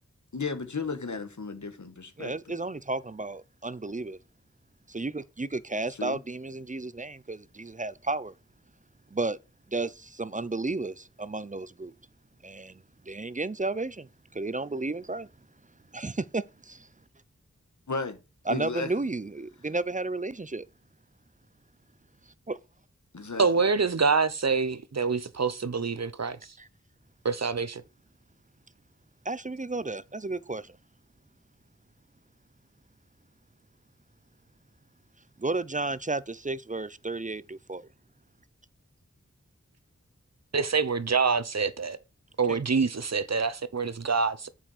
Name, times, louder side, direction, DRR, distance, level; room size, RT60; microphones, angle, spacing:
voice 1, 0.3-2.5 5.9-6.2 17.9-18.2 18.5-18.9 23.1-23.5, left 4 dB, 85° left, 1.3 m, -34 dB
voice 2, 2.2-4.2 4.9-8.3 9.1-9.4 9.7-11.9 12.4-15.3 15.9-16.9 18.5-20.7 22.5-22.6 26.6-26.7 29.3-30.8 35.4-37.9 42.5-42.6, right 3 dB, 25° right, 0.5 m, -33 dB
voice 3, 23.4-26.4 27.2-27.8 40.5-42.0 42.4-44.5, right 5 dB, 65° right, 0.8 m, -26 dB
7.4 x 5.5 x 4.9 m
wide cardioid pair, 45°, 29 cm